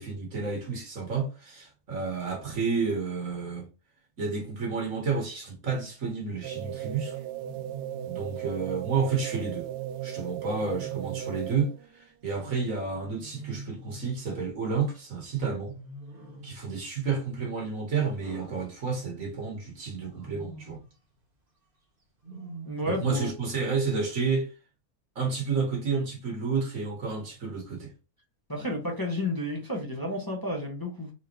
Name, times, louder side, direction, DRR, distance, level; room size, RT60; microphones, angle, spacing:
voice 1, 0.0-3.7 4.2-7.2 8.0-9.7 10.0-15.7 16.4-20.8 22.8-24.5 25.2-27.9, right 5 dB, 60° right, 2.0 m, -30 dB
Wild animals, 5.8-6.2 7.4-8.1 10.5-11.4 13.1-14.2 15.7-16.7 18.2-19.3 20.0-20.9 22.2-23.2, right 1 dB, 40° right, 1.2 m, -45 dB
sound 1, 6.4-11.9, right 12 dB, 85° right, 1.1 m, -36 dB
voice 2, 22.6-23.4 28.5-31.1, left 1 dB, 15° left, 1.2 m, -31 dB
4.3 x 3.6 x 3.0 m
omnidirectional pair, 1.5 m